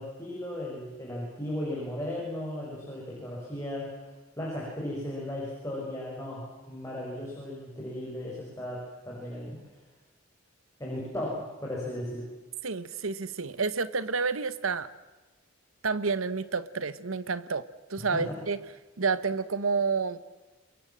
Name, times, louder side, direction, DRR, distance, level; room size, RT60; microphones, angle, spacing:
voice 1, 0.0-3.9 4.4-9.6 10.8-12.2 18.1-18.3, left 1 dB, 15° left, -4 dB, 7.1 m, -36 dB
voice 2, 12.6-14.9 15.8-18.6 19.0-20.2, right 4 dB, 85° right, 15 dB, 1.1 m, -29 dB
28.5 x 22.5 x 7.5 m, 1.2 s
head